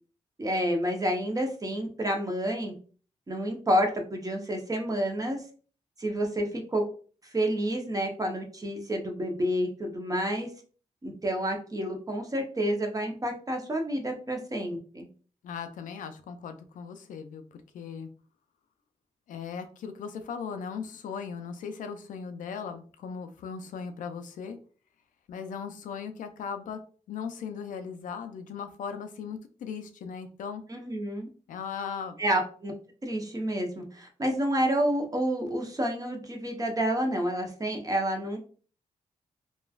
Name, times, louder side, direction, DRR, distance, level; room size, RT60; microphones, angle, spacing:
voice 1, 0.4-2.7 3.3-5.4 6.0-6.8 7.2-10.5 11.0-15.1 30.7-31.3 32.2-32.7 33.0-38.4, equal, 25° right, 3 dB, 0.7 m, -29 dB
voice 2, 15.4-18.1 19.3-24.6 25.3-26.8 27.1-30.6 31.5-32.2, left 6 dB, 85° left, 8 dB, 0.4 m, -38 dB
3.1 x 2.2 x 2.3 m, 0.41 s
cardioid pair, 65°, 13 cm